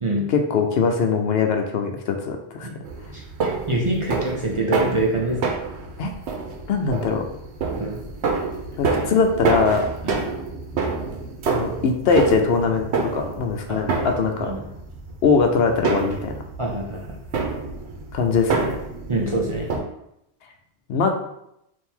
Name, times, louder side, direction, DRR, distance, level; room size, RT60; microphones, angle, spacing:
voice 1, 0.3-2.7 6.0-6.1 6.7-7.2 8.8-9.9 11.5-14.5 15.2-16.3 18.1-18.8 20.9-21.1, left 5 dB, 70° left, 4 dB, 0.8 m, -21 dB
sound 1, 2.8-19.8, right 4 dB, 80° right, 1.0 m, -28 dB
voice 2, 3.1-5.4 7.8-8.0 10.0-10.2 13.7-14.0 14.4-14.6 16.6-17.1 19.1-19.7, right 2 dB, 35° right, -2 dB, 0.5 m, -25 dB
3.6 x 2.7 x 4.4 m, 0.79 s
omnidirectional pair, 1.1 m